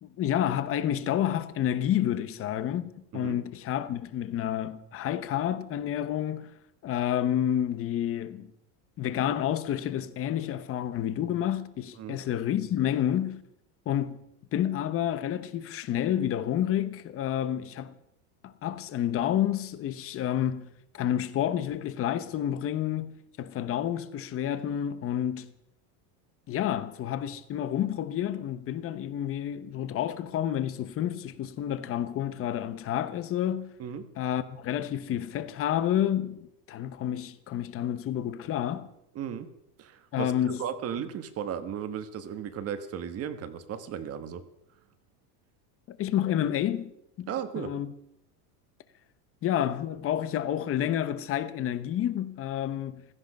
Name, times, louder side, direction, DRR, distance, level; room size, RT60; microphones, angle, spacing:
voice 1, 0.0-6.5 6.8-8.5 9.0-13.4 13.9-14.3 14.5-17.9 18.4-20.7 20.9-25.5 26.5-33.7 34.2-38.9 40.1-40.6 45.9-46.9 47.2-47.3 47.6-47.9 49.4-53.1, left 10 dB, 30° left, 1.0 m, -29 dB
voice 2, 39.1-39.5 39.8-44.4 47.3-47.8, right 8 dB, 30° right, 1.3 m, -35 dB
16.5 x 14.0 x 5.4 m
supercardioid pair, 155°, 47 cm